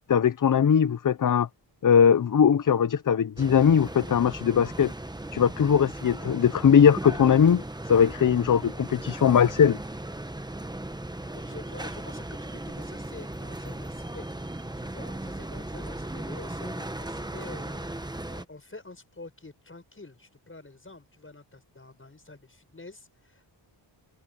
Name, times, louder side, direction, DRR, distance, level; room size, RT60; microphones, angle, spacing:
voice 1, 0.1-1.5 1.8-4.9 5.3-9.8, left 7 dB, 45° left, 0.7 m, -20 dB
sound 1, 3.4-18.4, right 1 dB, 10° right, 1.1 m, -37 dB
voice 2, 11.3-14.3 14.8-17.9 18.3-23.6, left 3 dB, 25° left, 7.4 m, -47 dB
wide cardioid pair, 85°, 45 cm